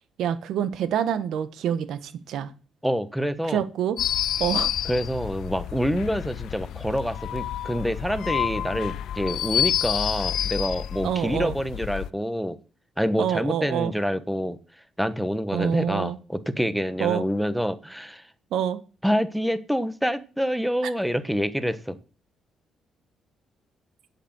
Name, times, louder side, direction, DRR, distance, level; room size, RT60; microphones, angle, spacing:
voice 1, 0.2-2.5 3.4-4.0 4.4-4.7 11.0-11.5 13.2-13.9 15.5-16.2 17.0-17.2 18.5-18.8, right 9 dB, 80° right, 13 dB, 1.2 m, -26 dB
voice 2, 2.8-3.6 4.8-12.6 13.0-14.6 15.0-18.3 19.0-22.0, equal, ahead, 12 dB, 1.2 m, -27 dB
sound 1, 4.0-12.1, left 11 dB, 75° left, 0.5 m, -29 dB
8.2 x 8.2 x 7.9 m, 0.37 s
cardioid pair, 90°, 0 cm